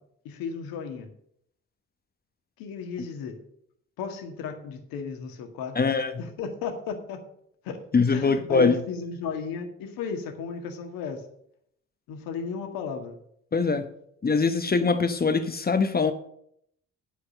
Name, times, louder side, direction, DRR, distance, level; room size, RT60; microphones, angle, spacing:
voice 1, 0.2-1.1 2.6-3.4 4.0-5.8 6.2-7.2 7.6-7.8 8.1-11.2 12.1-13.2, left 5 dB, 65° left, 1.8 m, -34 dB
voice 2, 5.7-6.2 7.9-8.8 13.5-13.9 14.2-16.1, left 4 dB, 25° left, 1.1 m, -23 dB
11.0 x 4.8 x 7.4 m
hypercardioid pair, 50°, 37 cm